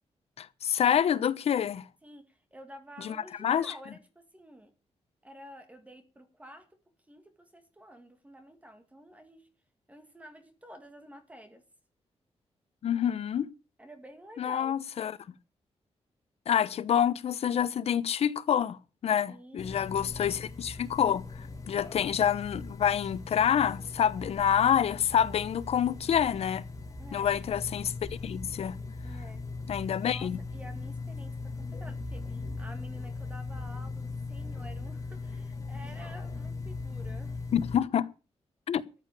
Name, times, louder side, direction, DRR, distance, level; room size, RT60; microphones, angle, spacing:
voice 1, 0.4-1.9 3.0-3.7 12.8-13.5 14.4-15.2 16.5-26.6 27.1-27.9 28.2-28.8 29.7-30.4 37.5-38.1 38.7-38.8, left 9 dB, 65° left, 0.9 m, -27 dB
voice 2, 2.0-4.7 5.2-6.8 7.1-9.5 9.9-11.6 13.8-14.7 19.3-20.2 27.0-27.4 29.0-29.4 30.0-37.5, equal, 15° right, 1.9 m, -50 dB
sound 1, 19.6-37.8, left 3 dB, 30° left, 2.6 m, -39 dB
14.0 x 8.6 x 6.8 m
wide cardioid pair, 150°, 11 cm